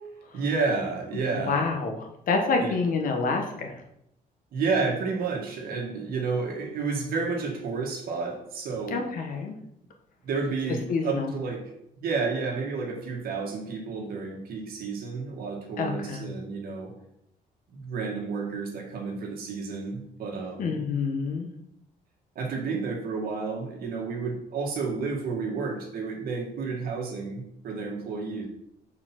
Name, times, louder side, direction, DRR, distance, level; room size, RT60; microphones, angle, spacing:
voice 1, 0.3-1.7 2.6-2.8 4.5-9.1 10.2-11.6 12.0-16.9 17.7-20.7 22.3-28.5, right 4 dB, 70° right, 1 dB, 1.6 m, -31 dB
voice 2, 1.3-3.7 8.9-9.5 10.9-11.3 15.8-16.3 20.6-21.5, left 4 dB, 60° left, 3 dB, 1.2 m, -27 dB
4.9 x 4.3 x 5.9 m, 0.78 s
cardioid pair, 140°, 16 cm